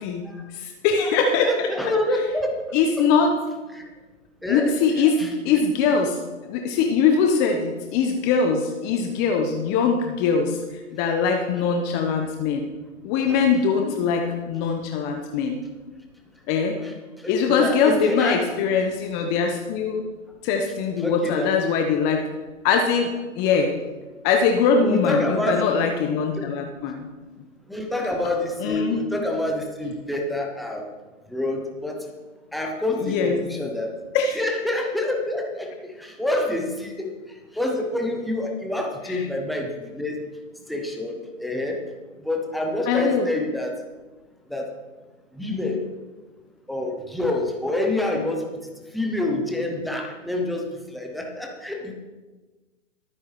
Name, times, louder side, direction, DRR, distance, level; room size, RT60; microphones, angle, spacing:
voice 1, 0.0-1.7 2.7-3.3 4.5-6.2 6.5-10.6 10.9-12.7 13.0-15.6 16.5-16.8 17.3-20.0 20.4-22.2 22.6-23.8 24.2-27.1 28.6-29.0 33.0-33.4 34.1-34.4 39.0-39.2 42.9-43.3, left 5 dB, 25° left, 4 dB, 1.0 m, -22 dB
voice 2, 1.0-2.5 3.7-3.8 4.4-5.6 11.6-11.7 13.3-13.4 13.7-14.0 16.8-18.5 21.0-21.5 24.8-25.6 27.7-30.8 31.3-32.0 32.5-33.9 34.4-35.7 36.0-37.1 37.5-40.2 40.7-41.8 42.2-43.7 44.5-44.7 45.3-45.8 46.7-48.4 48.9-50.6 50.9-51.9, left 1 dB, ahead, 1 dB, 0.4 m, -27 dB
22.5 x 9.3 x 3.1 m, 1.3 s
hypercardioid pair, 130°, 39 cm